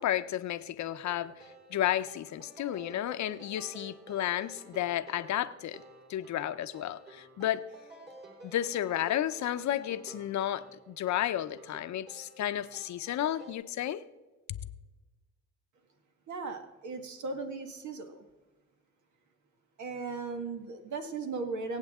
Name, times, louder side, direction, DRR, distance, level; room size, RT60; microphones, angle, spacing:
voice 1, 0.0-1.3 1.7-5.8 6.1-7.6 8.4-14.0, left 12 dB, 65° left, 0.8 m, -32 dB
sound 1, 1.1-13.5, right 2 dB, 35° right, 3.6 m, -52 dB
voice 2, 16.3-18.3 19.8-21.8, right 4 dB, 70° right, 1.7 m, -37 dB
24.5 x 8.2 x 3.6 m
cardioid pair, 90°, 30 cm